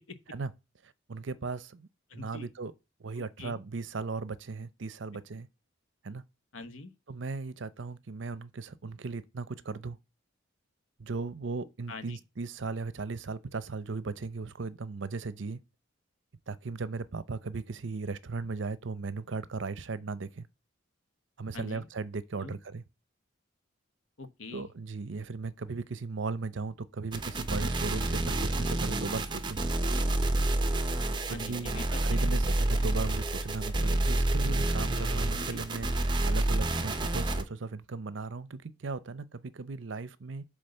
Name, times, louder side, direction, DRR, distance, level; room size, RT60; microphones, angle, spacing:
voice 1, 1.1-1.9 2.1-2.7 3.0-5.5 6.0-6.2 7.1-10.0 11.0-15.6 16.5-20.5 21.4-22.8 24.5-29.7 31.3-31.7 32.0-35.9 36.2-40.4, right 4 dB, 65° right, 0.6 m, -37 dB
voice 2, 2.1-2.5 3.2-3.6 6.5-6.9 11.9-12.2 21.5-21.9 22.4-22.6 24.2-24.7 31.3-32.3 35.3-35.6, left 3 dB, 80° left, 1.1 m, -44 dB
sound 1, 27.1-37.4, right 2 dB, 25° right, 0.8 m, -29 dB
7.9 x 3.7 x 6.6 m
head